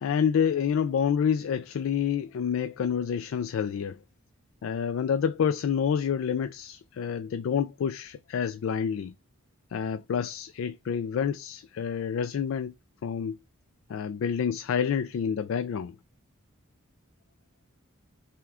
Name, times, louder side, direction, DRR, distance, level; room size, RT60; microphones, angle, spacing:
voice 1, 0.0-4.0 4.6-9.1 9.7-12.7 13.0-13.4 13.9-16.0, left 7 dB, 70° left, 0.3 m, -28 dB
5.7 x 2.2 x 3.6 m
head